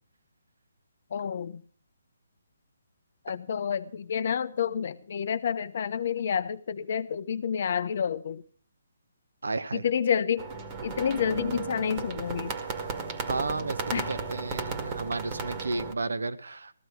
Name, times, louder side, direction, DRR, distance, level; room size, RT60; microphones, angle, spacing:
voice 1, 1.1-1.6 3.2-8.4 9.7-10.5 10.8-12.6 13.9-14.1, left 7 dB, 50° left, 0.9 m, -29 dB
voice 2, 9.4-9.9 13.3-16.7, right 3 dB, 85° right, 1.1 m, -32 dB
sound 1, 10.4-15.9, right 5 dB, 25° right, 1.7 m, -35 dB
15.0 x 13.5 x 4.7 m
hypercardioid pair, 155°, 0 cm